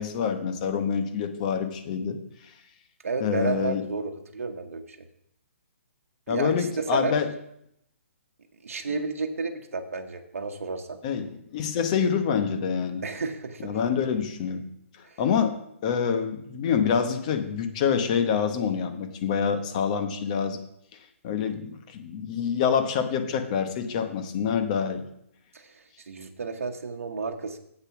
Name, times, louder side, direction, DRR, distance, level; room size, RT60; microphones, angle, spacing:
voice 1, 0.0-2.2 3.2-3.8 6.3-7.3 11.0-13.0 13.6-14.6 15.2-20.6 21.2-25.0, left 7 dB, 30° left, 7 dB, 1.0 m, -26 dB
voice 2, 3.0-5.0 6.3-7.2 8.6-11.0 13.0-13.8 15.0-15.2 25.5-27.6, right 4 dB, 80° right, 3 dB, 1.1 m, -32 dB
8.1 x 6.9 x 5.9 m, 0.74 s
hypercardioid pair, 165°, 7 cm